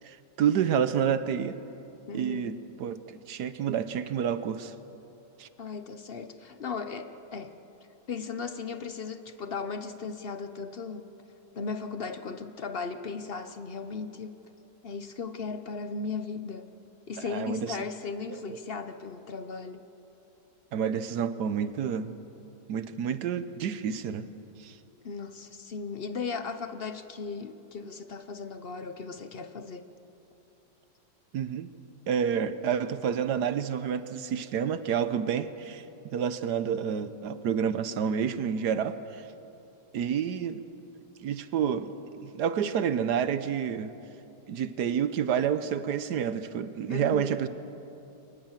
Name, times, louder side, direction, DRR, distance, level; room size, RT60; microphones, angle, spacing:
voice 1, 0.0-1.6 2.1-3.0 3.3-4.7 5.4-5.5 17.2-17.8 18.3-18.6 20.7-22.1 22.7-24.3 24.6-24.7 31.3-31.7 32.1-35.8 36.1-39.2 39.9-40.6 41.2-43.9 44.5-47.5, right 8 dB, 70° right, 12 dB, 1.3 m, -29 dB
voice 2, 2.1-2.6 5.6-7.6 8.1-11.1 11.5-14.4 14.8-16.7 17.1-19.8 25.0-29.9 46.9-47.3, left 5 dB, 50° left, 10 dB, 0.7 m, -37 dB
23.5 x 19.5 x 7.4 m, 3.0 s
omnidirectional pair, 2.0 m